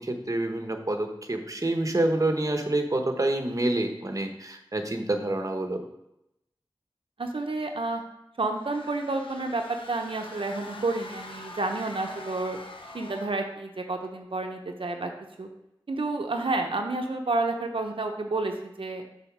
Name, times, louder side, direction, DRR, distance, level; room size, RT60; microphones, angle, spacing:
voice 1, 0.0-5.8, right 1 dB, 40° right, 5 dB, 1.0 m, -27 dB
voice 2, 7.2-8.0 8.4-12.6 12.9-15.1 15.4-15.5 15.9-19.0, right 2 dB, 90° right, 3 dB, 0.7 m, -30 dB
sound 1, 8.5-13.5, left 2 dB, 90° left, 0.8 m, -44 dB
7.0 x 4.2 x 6.0 m, 0.84 s
wide cardioid pair, 50°, 9 cm